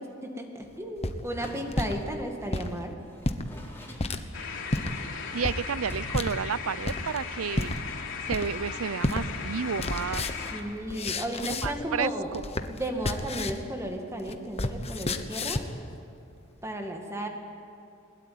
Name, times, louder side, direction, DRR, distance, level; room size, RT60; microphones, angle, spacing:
voice 1, 0.0-3.0 10.5-12.3 12.7-15.7 16.6-17.3, right 1 dB, 15° right, 3 dB, 2.1 m, -34 dB
sound 1, 0.7-2.0 2.4-2.7 3.2-3.4 4.0-4.2 4.7-4.9 5.4-5.6 6.1-6.3 6.9-7.2 7.5-7.8 8.3-8.7 9.0-9.2 9.5-11.9 12.2-13.7 14.0-15.8, left 2 dB, 30° left, 1.1 m, -31 dB
Door, 1.3-1.8 3.0-4.7 5.8-6.3, equal, 10° left, 3.9 m, -44 dB
sound 2, 4.3-10.6, left 5 dB, 65° left, 3.4 m, -37 dB
voice 2, 5.3-7.7 8.3-10.3 11.6-12.4, right 6 dB, 90° right, 20 dB, 0.5 m, -31 dB
21.0 x 21.0 x 9.5 m, 2.5 s
head